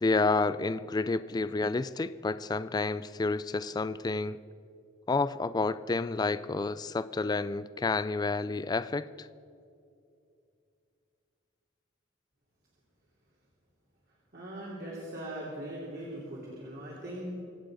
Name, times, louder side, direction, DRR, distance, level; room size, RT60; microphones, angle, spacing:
voice 1, 0.0-4.4 5.1-9.3, left 3 dB, 20° left, 14 dB, 0.3 m, -30 dB
voice 2, 14.3-17.3, right 1 dB, 55° right, -5 dB, 3.0 m, -40 dB
25.0 x 8.5 x 4.9 m, 2.5 s
head